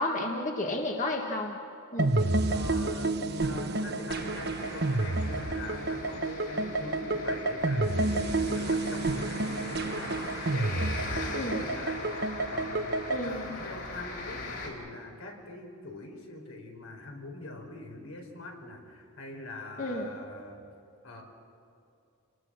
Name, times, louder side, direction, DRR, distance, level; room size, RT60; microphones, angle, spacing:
voice 1, 0.0-1.6 1.9-2.1 11.3-11.6 13.1-13.6 19.8-20.1, left 1 dB, 35° left, 1 dB, 1.7 m, -32 dB
sound 1, 2.0-13.3, right 2 dB, 50° right, 1.1 m, -30 dB
voice 2, 2.5-20.7 21.0-21.2, left 2 dB, 80° left, 2 dB, 4.8 m, -43 dB
sound 2, 4.1-14.7, left 2 dB, 50° left, 4.9 m, -40 dB
29.5 x 20.5 x 6.4 m, 2.6 s
head